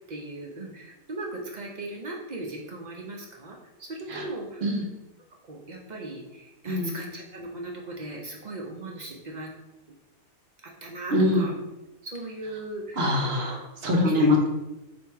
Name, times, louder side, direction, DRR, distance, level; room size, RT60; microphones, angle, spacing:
voice 1, 0.1-4.6 5.5-9.5 10.6-11.5 12.0-13.0 14.0-14.5, right 2 dB, 70° right, 0 dB, 0.4 m, -38 dB
voice 2, 6.7-7.0 11.1-11.5 13.0-14.5, left 1 dB, 50° right, 2 dB, 0.9 m, -23 dB
4.2 x 2.7 x 4.6 m, 0.98 s
omnidirectional pair, 1.6 m